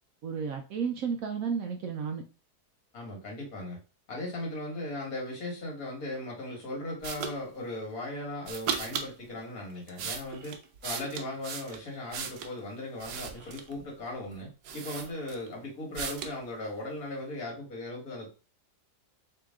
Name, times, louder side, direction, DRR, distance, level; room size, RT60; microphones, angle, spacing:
voice 1, 0.2-2.2, right 6 dB, 70° right, 4 dB, 0.9 m, -32 dB
voice 2, 2.9-3.8 4.1-10.6 10.8-18.3, left 1 dB, 60° left, -1 dB, 2.1 m, -38 dB
sound 1, 7.0-7.4 8.4-9.1 9.7-12.6 13.0-13.8 14.3-14.4 14.6-15.5 15.9-16.4, right 7 dB, 85° right, 1.3 m, -37 dB
3.9 x 2.8 x 3.5 m, 0.32 s
omnidirectional pair, 1.7 m